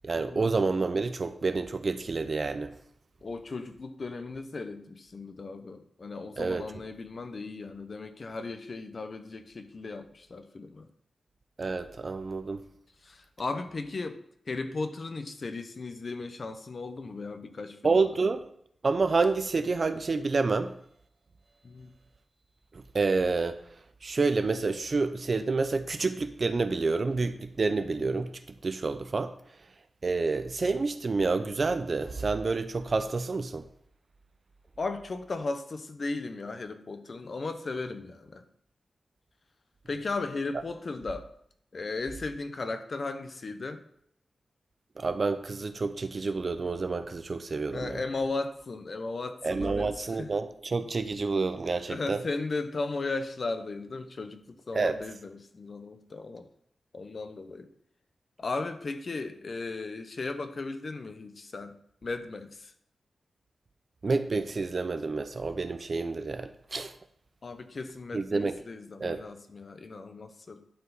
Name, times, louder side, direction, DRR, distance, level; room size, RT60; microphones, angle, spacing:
voice 1, 0.0-2.7 6.4-6.7 11.6-12.6 17.8-18.5 18.8-20.7 22.7-23.6 24.0-28.3 28.6-29.3 30.0-33.7 45.0-48.0 49.4-52.2 54.7-55.0 64.0-66.9 68.1-68.6 69.0-69.2, right 4 dB, 45° right, 10 dB, 0.6 m, -28 dB
voice 2, 3.2-10.9 13.0-14.2 14.5-18.0 21.6-21.9 34.8-38.4 39.9-41.3 41.7-43.8 47.7-50.3 51.9-56.5 56.9-57.7 58.4-61.7 62.0-62.7 67.4-70.6, left 3 dB, 45° left, 8 dB, 0.8 m, -36 dB
11.0 x 4.8 x 4.0 m, 0.68 s
wide cardioid pair, 120°, 0 cm